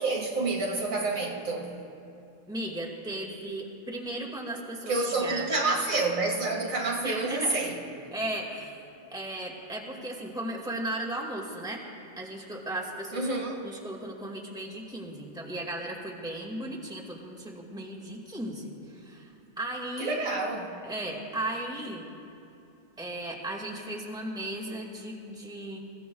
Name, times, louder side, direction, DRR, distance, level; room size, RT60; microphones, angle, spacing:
voice 1, 0.0-1.7 4.9-7.8 13.1-13.6 20.0-20.7, right 3 dB, 75° right, -3 dB, 2.4 m, -28 dB
voice 2, 2.5-5.5 7.0-7.6 8.1-8.8 9.1-11.8 12.2-13.3 13.6-20.2 20.8-22.1 23.0-25.8, right 1 dB, 5° right, -2 dB, 2.0 m, -36 dB
28.5 x 16.0 x 2.3 m, 2.7 s
omnidirectional pair, 1.4 m